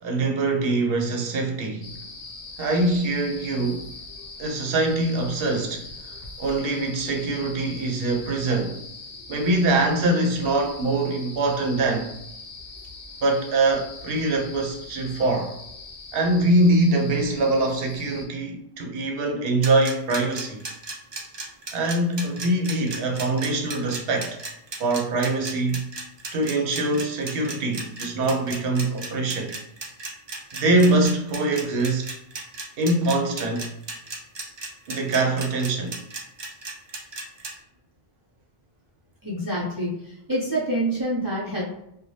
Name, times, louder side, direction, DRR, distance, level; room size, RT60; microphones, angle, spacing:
voice 1, 0.0-1.9 2.6-3.9 4.4-5.9 6.4-8.8 9.3-12.1 13.2-15.6 16.1-20.6 21.7-24.4 24.8-25.9 26.3-29.5 30.5-32.1 32.8-33.7 34.9-36.0, right 2 dB, 70° right, 0.8 m, -23 dB
sound 1, 1.8-18.3, left 3 dB, 55° left, 0.6 m, -41 dB
sound 2, 19.6-37.5, right 3 dB, 40° right, 0.4 m, -35 dB
voice 2, 39.2-41.6, right 1 dB, 20° right, 0.7 m, -27 dB
2.6 x 2.2 x 3.1 m
omnidirectional pair, 1.0 m